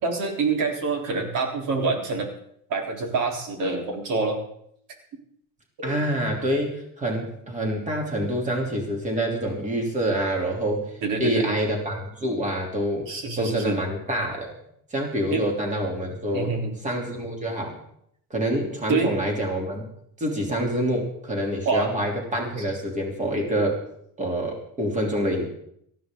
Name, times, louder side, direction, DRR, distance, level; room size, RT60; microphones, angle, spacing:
voice 1, 0.0-2.3 2.7-4.4 5.8-6.0 11.0-11.5 13.1-13.8 15.3-15.5 16.3-16.7 18.9-19.2 21.7-21.9, right 4 dB, 65° right, 2 dB, 3.8 m, -26 dB
voice 2, 5.8-10.9 11.2-13.1 13.4-14.5 14.9-16.5 16.8-17.8 18.3-19.9 20.2-23.8 24.2-25.5, right 1 dB, 20° right, 1 dB, 3.3 m, -26 dB
18.5 x 14.0 x 3.8 m, 0.70 s
cardioid pair, 145°, 36 cm